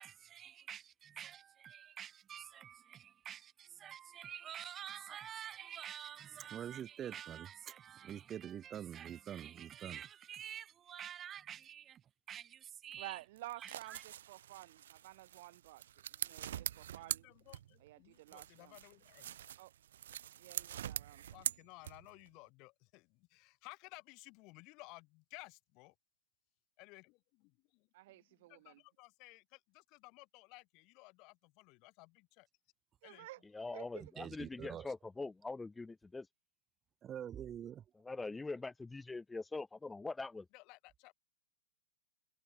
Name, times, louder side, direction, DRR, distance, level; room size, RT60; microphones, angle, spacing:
voice 1, 0.0-12.0 12.3-13.2 13.6-14.0 34.0-34.9 37.0-37.8, right 9 dB, 25° right, 0.8 m, -47 dB
voice 2, 13.0-17.3 17.8-18.8 19.6-19.7 20.4-21.3 27.9-28.8 33.0-33.4 33.7-34.0, right 18 dB, 55° right, 1.0 m, -52 dB
sound 1, 13.4-17.9 18.3-22.3, right 11 dB, 70° right, 0.5 m, -44 dB
voice 3, 17.0-19.3 21.3-25.9 26.8-27.1 28.1-28.2 28.5-32.5 33.0-33.3 40.5-41.1, left 26 dB, 40° left, 1.0 m, -57 dB
voice 4, 33.5-36.3 38.0-40.5, left 3 dB, 10° left, 0.7 m, -43 dB
hypercardioid pair, 130°, 0 cm